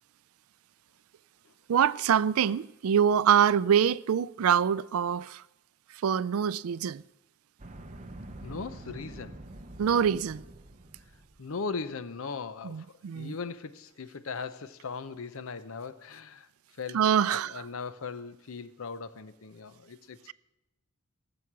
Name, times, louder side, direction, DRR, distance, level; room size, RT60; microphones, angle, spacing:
voice 1, 1.7-5.4 5.9-7.0 9.8-10.4 12.6-13.3 16.9-17.7, right 8 dB, 75° right, 0.4 m, -25 dB
sound 1, 7.6-11.5, right 1 dB, 35° right, 0.8 m, -46 dB
voice 2, 8.4-9.4 11.4-16.5 16.8-20.3, left 4 dB, 70° left, 0.7 m, -39 dB
17.0 x 7.1 x 6.1 m
head